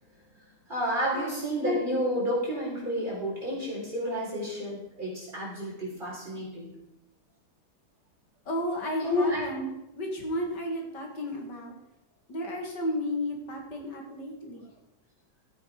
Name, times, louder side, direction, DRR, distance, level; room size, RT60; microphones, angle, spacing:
voice 1, 0.7-6.7 9.0-9.4, equal, 25° right, -4 dB, 4.4 m, -30 dB
voice 2, 8.5-9.7 10.0-11.7 12.3-14.7, left 1 dB, 70° left, 1 dB, 2.7 m, -33 dB
13.5 x 8.3 x 5.0 m, 0.88 s
omnidirectional pair, 1.9 m